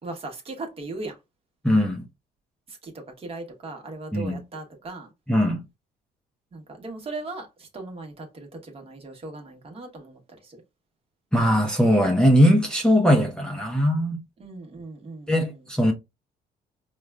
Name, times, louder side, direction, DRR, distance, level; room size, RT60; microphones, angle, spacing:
voice 1, 0.0-1.2 2.7-5.1 6.5-10.6 14.4-15.6, right 2 dB, 35° right, 1.1 m, -38 dB
voice 2, 1.6-2.0 4.1-4.4 5.3-5.6 11.3-14.2 15.3-15.9, equal, 5° left, 0.7 m, -20 dB
4.9 x 2.3 x 2.2 m
cardioid pair, 110°, 17 cm